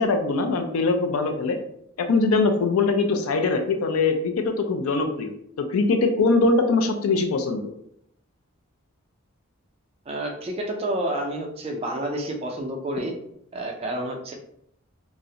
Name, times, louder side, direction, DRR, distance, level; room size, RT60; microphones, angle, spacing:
voice 1, 0.0-1.6 2.0-5.3 5.7-7.7, left 3 dB, 90° left, 6 dB, 0.4 m, -22 dB
voice 2, 10.1-13.1 13.5-14.3, right 1 dB, 30° right, 2 dB, 0.4 m, -29 dB
2.4 x 2.0 x 2.7 m, 0.72 s
head